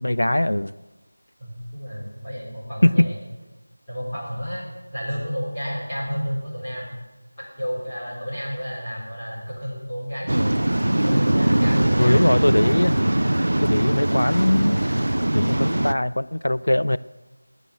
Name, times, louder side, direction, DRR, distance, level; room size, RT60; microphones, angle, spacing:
voice 1, 0.0-0.7 2.8-3.1 12.0-13.0 13.6-15.1 15.3-17.0, left 1 dB, 90° left, 17 dB, 0.4 m, -21 dB
voice 2, 1.4-3.2 3.9-7.0 7.6-10.6 11.0-12.2, equal, 10° left, -11 dB, 4.1 m, -31 dB
Waves surf, 10.3-15.9, right 1 dB, 75° right, 0.4 m, -21 dB
10.5 x 9.2 x 9.2 m, 1.1 s
figure-of-eight pair, 180°, 0 cm